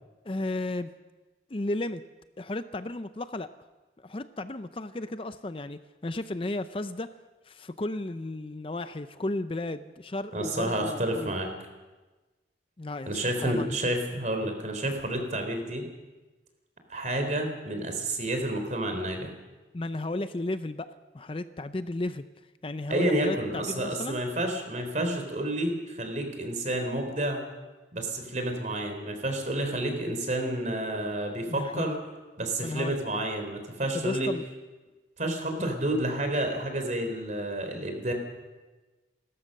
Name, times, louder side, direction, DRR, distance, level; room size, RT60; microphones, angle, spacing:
voice 1, 0.2-0.9 1.5-2.0 2.4-3.5 4.0-7.1 7.5-11.4 12.8-13.8 19.7-20.9 21.1-22.2 22.6-24.2 31.5-31.9 32.6-33.0 33.9-34.4, left 2 dB, 30° left, 12 dB, 0.5 m, -34 dB
voice 2, 10.3-11.5 13.1-15.9 16.9-19.3 22.9-27.4 27.9-32.0 32.4-34.3 35.2-38.1, right 1 dB, 40° right, 5 dB, 3.6 m, -30 dB
29.5 x 13.5 x 6.6 m, 1.2 s
head